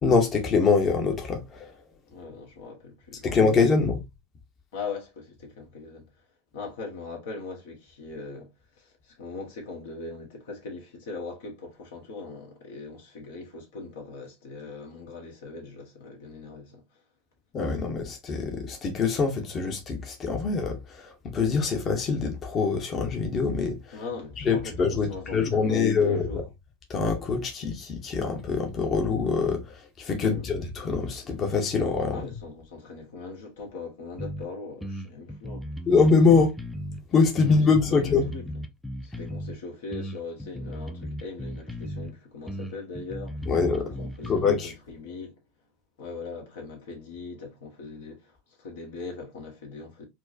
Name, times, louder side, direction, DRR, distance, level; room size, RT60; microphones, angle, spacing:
voice 1, 0.0-1.8 3.2-4.0 17.5-24.0 24.4-26.4 26.9-32.3 35.9-36.5 37.1-38.3 43.4-43.9 44.3-44.7, left 4 dB, 35° left, 0.9 m, -24 dB
voice 2, 2.1-3.4 4.7-6.1 6.5-8.5 8.8-16.8 23.9-26.4 30.2-30.5 32.1-35.7 37.4-37.6 37.9-38.4 39.0-43.5 43.8-45.3 46.0-50.0, left 4 dB, 80° left, 1.4 m, -40 dB
sound 1, 34.2-34.5 34.8-37.0 37.4-39.6 39.9-42.1 42.5-44.4, equal, ahead, 0.5 m, -36 dB
4.4 x 2.2 x 2.6 m
hypercardioid pair, 105°, 0 cm